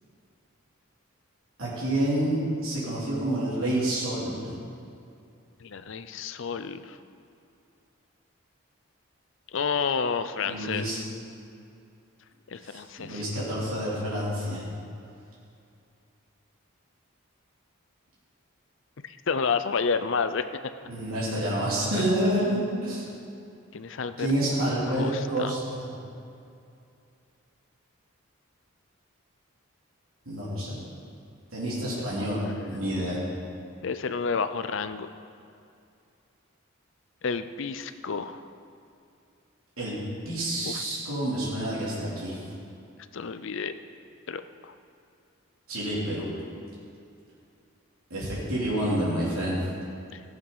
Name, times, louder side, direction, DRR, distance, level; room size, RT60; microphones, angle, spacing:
voice 1, 1.6-4.5 10.4-11.0 12.6-14.6 20.9-23.0 24.2-25.8 30.2-30.8 31.5-33.2 39.8-39.9 40.2-42.4 45.7-46.3 48.1-49.6, right 1 dB, 80° right, -8 dB, 3.5 m, -28 dB
voice 2, 5.6-7.0 9.5-11.1 12.5-13.2 19.0-20.5 21.9-22.1 23.7-24.3 24.9-25.5 32.0-32.6 33.8-35.1 37.2-38.4 40.6-40.8 43.1-43.7 44.3-44.7 50.1-50.2, left 5 dB, 65° left, 11 dB, 0.5 m, -30 dB
15.0 x 7.4 x 5.6 m, 2.5 s
head